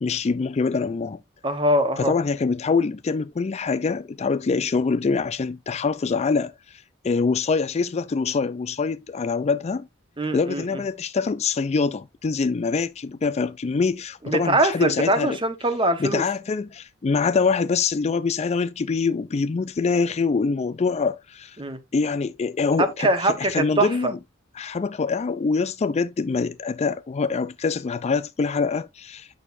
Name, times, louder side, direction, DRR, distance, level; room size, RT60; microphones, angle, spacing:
voice 1, 0.0-1.2 2.0-9.9 10.3-15.4 16.0-21.6 21.9-23.1 23.4-24.2 24.6-29.3, left 4 dB, 35° left, 0.4 m, -24 dB
voice 2, 1.4-2.1 10.2-10.8 14.2-16.2 21.6-21.8 22.8-24.1, right 1 dB, 25° right, 1.2 m, -23 dB
8.9 x 6.4 x 2.5 m
head